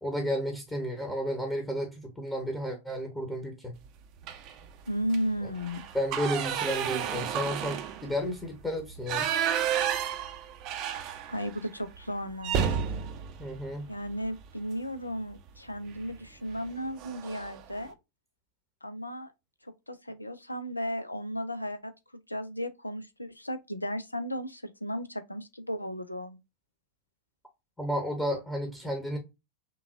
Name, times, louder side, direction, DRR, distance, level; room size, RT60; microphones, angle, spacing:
voice 1, 0.0-3.7 5.4-5.5 5.9-9.3 13.4-13.9 27.8-29.2, equal, 10° left, 1.0 m, -32 dB
sound 1, 4.2-4.6 5.0-5.2 5.5-11.6 11.9-12.0 12.4-14.5 15.9-16.2 16.5-16.7 17.0-17.6, right 9 dB, 40° right, 0.5 m, -32 dB
voice 2, 4.9-5.8 11.3-12.8 13.9-18.0 18.8-19.3 19.6-21.9 22.3-26.4, equal, 85° left, 0.5 m, -35 dB
5.7 x 2.3 x 2.5 m
figure-of-eight pair, 90°, 0 cm